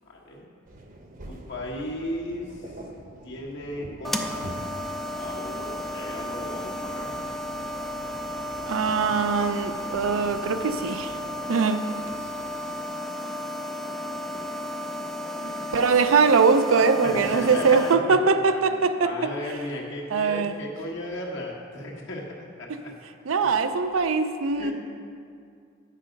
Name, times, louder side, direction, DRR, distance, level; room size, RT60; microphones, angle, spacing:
voice 1, 0.1-0.5 1.2-2.6 3.2-4.5 5.1-7.1 12.0-12.3 13.4-13.7 15.4-15.7 17.0-17.9 18.7-22.9 23.9-24.0 24.6-24.7, left 1 dB, 65° left, -3 dB, 1.5 m, -36 dB
sound 1, 0.7-11.4, right 1 dB, 45° right, 0.8 m, -45 dB
sound 2, 4.0-17.9, left 1 dB, ahead, 0.4 m, -33 dB
voice 2, 8.7-11.1 11.5-11.8 15.7-19.1 20.1-20.6 23.3-24.7, right 5 dB, 80° right, 9 dB, 0.5 m, -22 dB
8.9 x 6.7 x 5.2 m, 2.3 s
head